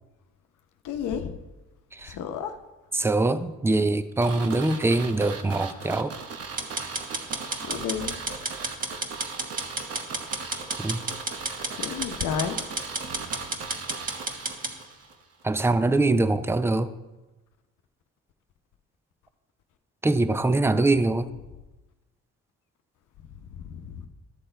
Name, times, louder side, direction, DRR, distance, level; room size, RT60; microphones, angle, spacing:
voice 1, 0.8-1.4 2.0-2.6 7.6-8.1 11.6-12.6 23.3-24.1, left 8 dB, 80° left, 7 dB, 0.9 m, -32 dB
voice 2, 2.9-6.1 10.8-11.0 15.4-16.9 20.0-21.3, right 2 dB, 10° right, 12 dB, 0.5 m, -23 dB
sound 1, 4.2-15.1 15.4-15.5, right 5 dB, 50° right, 1.1 m, -38 dB
sound 2, 6.6-14.7, right 2 dB, 30° right, 1.4 m, -32 dB
12.5 x 6.7 x 4.4 m, 1.1 s
cardioid pair, 90°, 30 cm